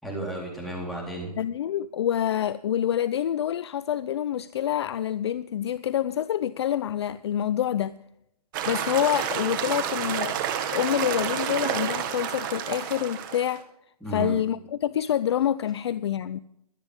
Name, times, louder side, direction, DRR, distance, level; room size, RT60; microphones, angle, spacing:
voice 1, 0.0-1.3 14.0-14.3, right 2 dB, ahead, -4 dB, 4.0 m, -33 dB
voice 2, 1.4-8.0 8.7-10.4 10.7-13.6 14.1-16.4, left 10 dB, 40° left, 16 dB, 0.5 m, -27 dB
sound 1, 8.5-13.6, right 9 dB, 30° right, 1.8 m, -29 dB
23.5 x 8.9 x 3.6 m, 0.78 s
hypercardioid pair, 155°, 20 cm